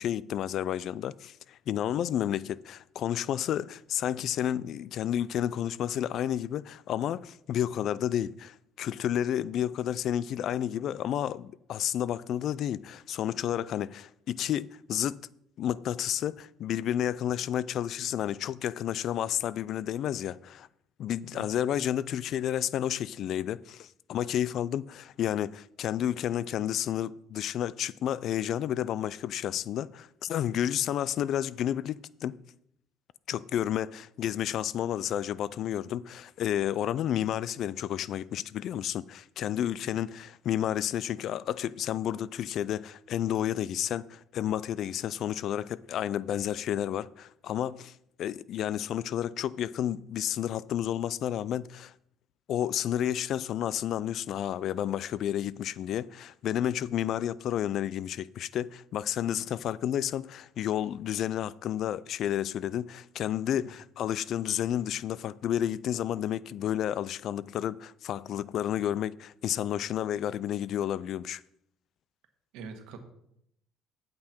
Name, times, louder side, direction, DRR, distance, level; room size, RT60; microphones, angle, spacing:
voice 1, 0.0-15.2 15.6-20.7 21.0-32.4 33.3-47.9 48.2-51.9 52.5-71.4, left 10 dB, 60° left, 0.3 m, -31 dB
voice 2, 72.5-73.0, right 4 dB, 80° right, 1.4 m, -44 dB
8.5 x 7.6 x 4.4 m
cardioid pair, 110°, 0 cm